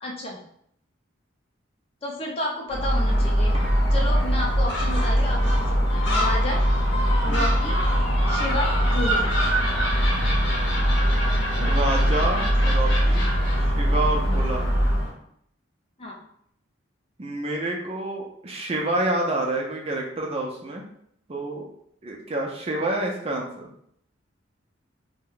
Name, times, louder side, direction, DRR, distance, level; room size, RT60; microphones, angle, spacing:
voice 1, 0.0-0.4 2.0-3.5 3.9-6.6 7.2-7.8 8.3-9.3 16.0-16.2, left 1 dB, 30° left, -1 dB, 0.5 m, -31 dB
Gull seagull, 2.7-15.1, equal, 65° left, 0.8 m, -21 dB
voice 2, 11.6-13.3 13.6-14.7 17.2-20.8 21.3-21.6 22.0-23.7, right 2 dB, 30° right, 0 dB, 0.4 m, -28 dB
2.7 x 2.1 x 3.8 m, 0.70 s
head